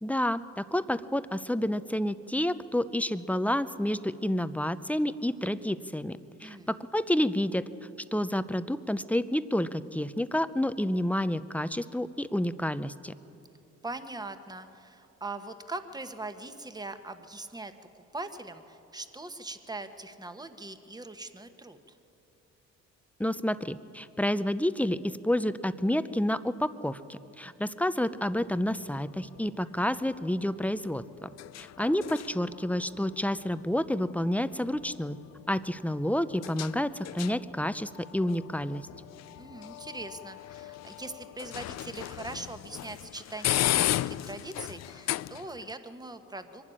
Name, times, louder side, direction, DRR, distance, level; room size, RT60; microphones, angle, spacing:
voice 1, 0.0-7.6 8.1-13.1 23.2-31.3 31.6-35.2 35.5-38.9, left 1 dB, 5° left, 13 dB, 0.6 m, -29 dB
voice 2, 6.4-6.7 13.8-21.8 27.4-27.7 31.8-32.0 39.4-46.7, right 2 dB, 15° right, 9 dB, 1.2 m, -41 dB
sound 1, 28.3-45.7, left 14 dB, 60° left, 0.5 m, -37 dB
23.0 x 12.0 x 9.9 m, 2.9 s
cardioid pair, 90°, 30 cm